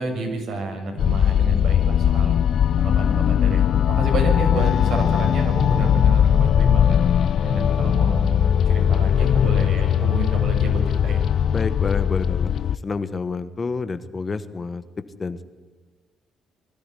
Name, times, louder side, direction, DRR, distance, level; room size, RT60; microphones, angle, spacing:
voice 1, 0.0-2.4 2.8-7.0 7.4-11.2, right 3 dB, 75° right, 2 dB, 6.5 m, -30 dB
sound 1, 1.0-12.8, left 9 dB, 65° left, 0.6 m, -19 dB
voice 2, 11.5-14.8 15.2-15.4, left 4 dB, 35° left, 11 dB, 1.3 m, -29 dB
22.5 x 13.0 x 9.9 m, 1.3 s
cardioid pair, 90°, 0 cm